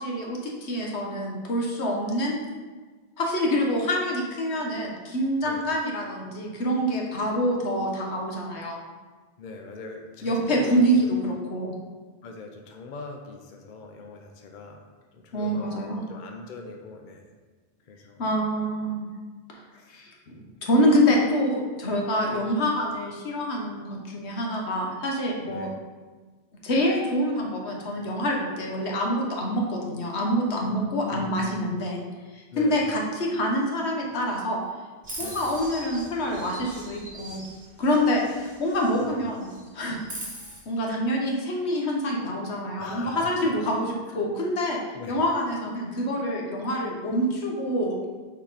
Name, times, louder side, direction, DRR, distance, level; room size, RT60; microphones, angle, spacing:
voice 1, 0.0-2.4 3.2-8.8 10.2-11.8 15.3-16.0 18.2-19.1 19.9-25.7 26.6-32.0 32.3-34.6 35.2-37.5 37.8-39.5 39.7-40.0 40.7-44.8 45.1-48.0, equal, 90° left, -1 dB, 1.3 m, -26 dB
voice 2, 9.4-10.9 12.2-14.8 15.1-17.2 17.9-18.2 25.5-25.7 31.1-31.7 32.5-32.8 35.2-35.4 39.0-39.2 42.8-43.5 44.4-44.5 44.9-45.2, left 3 dB, 50° left, 3 dB, 0.8 m, -41 dB
Chirp tweet, 35.0-39.1 39.4-40.6, right 1 dB, 50° right, 2.1 m, -41 dB
5.8 x 4.4 x 4.1 m, 1.4 s
omnidirectional pair, 1.1 m